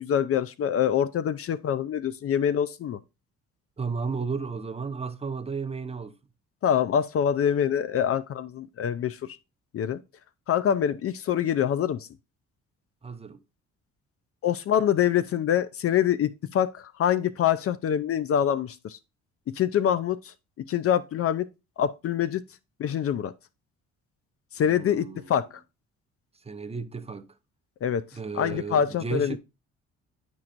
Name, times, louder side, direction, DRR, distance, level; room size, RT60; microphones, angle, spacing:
voice 1, 0.0-3.0 6.6-9.4 9.7-10.0 10.5-12.1 14.4-19.0 19.5-20.3 20.7-21.5 21.8-22.4 22.8-23.3 24.5-25.5 27.8-28.0 28.3-29.4, left 9 dB, 50° left, 0.4 m, -25 dB
voice 2, 3.8-6.2 13.0-13.4 24.6-25.4 26.4-27.3 28.1-29.4, right 5 dB, 20° right, 0.6 m, -33 dB
9.5 x 4.6 x 2.5 m
cardioid pair, 90°, 30 cm